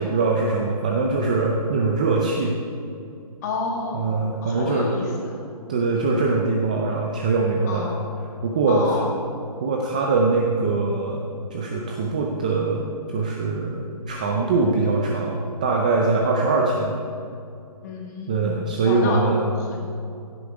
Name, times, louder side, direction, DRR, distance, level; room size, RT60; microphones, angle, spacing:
voice 1, 0.0-2.6 3.9-4.9 5.7-7.9 8.4-9.0 9.6-17.0 18.3-19.4, right 3 dB, 10° right, 0 dB, 0.4 m, -22 dB
voice 2, 3.4-4.1 4.4-5.4 7.7-8.0 8.7-9.1 17.8-19.2 19.6-19.8, left 3 dB, 25° left, -1 dB, 2.2 m, -30 dB
16.0 x 8.2 x 4.9 m, 2.6 s
hypercardioid pair, 165°, 20 cm